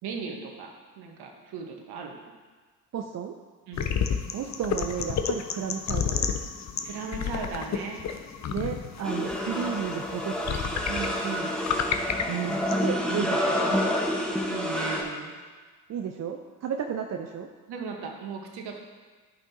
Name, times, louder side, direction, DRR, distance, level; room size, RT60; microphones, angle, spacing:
voice 1, 0.0-2.2 3.7-3.9 6.8-8.1 10.9-11.5 13.2-13.9 14.5-15.3 17.7-18.8, right 5 dB, 60° right, 2 dB, 1.4 m, -37 dB
voice 2, 2.9-3.3 4.3-6.3 8.5-10.8 12.3-14.0 15.9-17.5, right 8 dB, 40° right, 4 dB, 0.6 m, -33 dB
sound 1, 3.7-12.9, left 7 dB, 40° left, 0.7 m, -31 dB
sound 2, 9.0-15.0, equal, ahead, 1.3 m, -28 dB
11.0 x 5.4 x 2.9 m, 1.4 s
hypercardioid pair, 55°, 44 cm